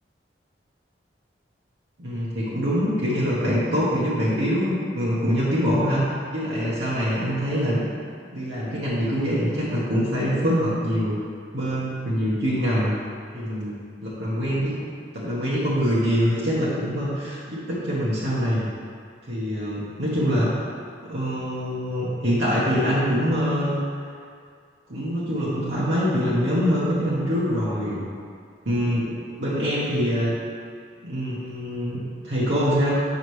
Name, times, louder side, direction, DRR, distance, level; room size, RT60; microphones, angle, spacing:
voice 1, 2.0-7.8 8.3-11.2 11.5-13.0 13.3-13.7 14.0-14.8 15.1-18.7 19.3-20.6 21.0-23.8 24.9-28.0 28.6-30.3 31.0-32.9, equal, 70° right, -8 dB, 1.2 m, -24 dB
7.3 x 5.7 x 3.2 m, 2.2 s
head